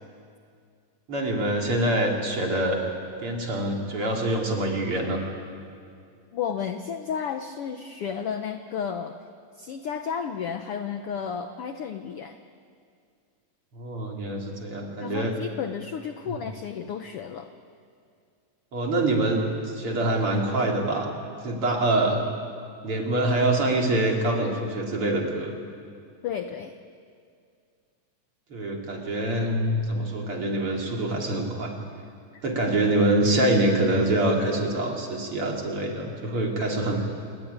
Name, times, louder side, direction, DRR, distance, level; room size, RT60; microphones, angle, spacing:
voice 1, 1.1-2.8 3.2-5.2 13.7-15.3 16.3-16.4 18.7-19.4 19.7-21.1 21.4-22.2 22.8-25.5 28.5-31.7 32.4-37.0, right 1 dB, 40° right, 0 dB, 4.1 m, -25 dB
voice 2, 6.3-9.2 9.6-12.4 15.0-17.5 26.2-26.7 32.3-32.4, left 7 dB, 80° left, 7 dB, 1.3 m, -32 dB
27.5 x 21.5 x 9.6 m, 2.3 s
omnidirectional pair, 4.0 m